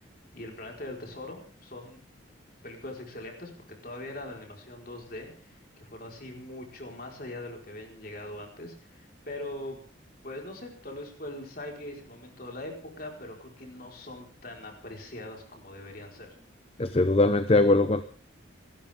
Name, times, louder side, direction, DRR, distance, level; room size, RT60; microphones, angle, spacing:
voice 1, 0.3-2.0 2.6-3.5 3.8-9.8 10.2-16.3, left 1 dB, 45° left, 1 dB, 4.7 m, -41 dB
voice 2, 16.8-18.0, left 2 dB, 30° left, 11 dB, 0.7 m, -21 dB
28.5 x 12.5 x 3.7 m, 0.40 s
head